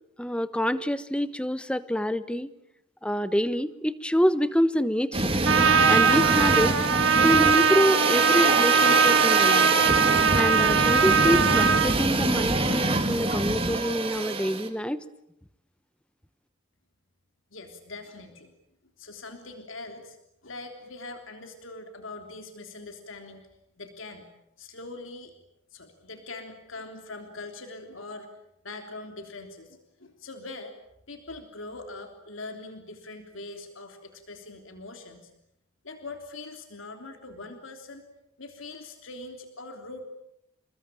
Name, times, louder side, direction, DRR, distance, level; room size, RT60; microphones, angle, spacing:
voice 1, 0.2-2.5 3.0-5.4 5.9-6.8 7.2-9.7 10.3-15.0, equal, 5° left, 14 dB, 1.1 m, -26 dB
sound 1, 5.1-14.7, right 3 dB, 30° right, 2.7 m, -25 dB
Trumpet, 5.4-11.9, right 6 dB, 80° right, 1.8 m, -21 dB
voice 2, 17.5-18.5 19.0-20.2 20.4-23.4 23.8-24.3 24.6-25.3 25.7-28.3 28.6-30.7 31.1-35.3 35.8-38.1 38.4-40.0, left 2 dB, 85° left, 5 dB, 3.3 m, -42 dB
29.5 x 21.0 x 9.1 m, 0.82 s
head